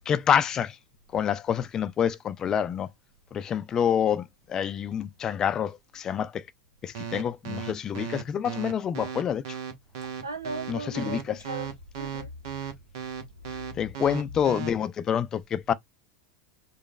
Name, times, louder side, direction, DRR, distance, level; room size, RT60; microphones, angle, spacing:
voice 1, 0.1-0.8 1.1-2.9 3.3-6.4 6.8-9.6 10.7-11.4 13.7-15.7, left 8 dB, 30° left, 0.5 m, -27 dB
sound 1, 6.9-14.7, right 7 dB, 60° right, 1.1 m, -35 dB
voice 2, 10.2-11.7 12.0-12.3 13.5-13.8, right 3 dB, 85° right, 1.0 m, -37 dB
5.0 x 2.3 x 3.2 m
figure-of-eight pair, 85°, 2 cm